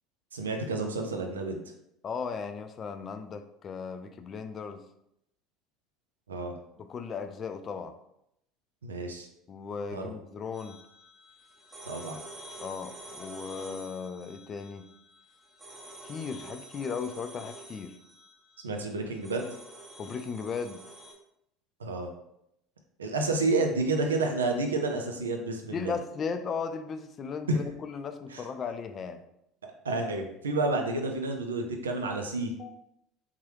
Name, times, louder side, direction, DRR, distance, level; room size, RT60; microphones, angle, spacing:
voice 1, 0.3-1.6 6.3-6.5 8.8-9.3 9.9-10.1 11.8-12.2 18.6-19.5 21.8-22.1 23.0-25.9 27.5-27.6 28.3-28.4 29.8-32.5, right 2 dB, 85° right, 3 dB, 0.5 m, -30 dB
voice 2, 2.0-4.8 6.8-8.0 9.5-10.8 12.6-14.8 16.0-17.9 20.0-20.8 25.7-29.2 32.6-32.7, left 5 dB, 40° left, 8 dB, 0.4 m, -36 dB
sound 1, 10.5-21.1, right 1 dB, 25° right, 1.1 m, -48 dB
3.7 x 3.1 x 3.0 m, 0.78 s
hypercardioid pair, 70°, 0 cm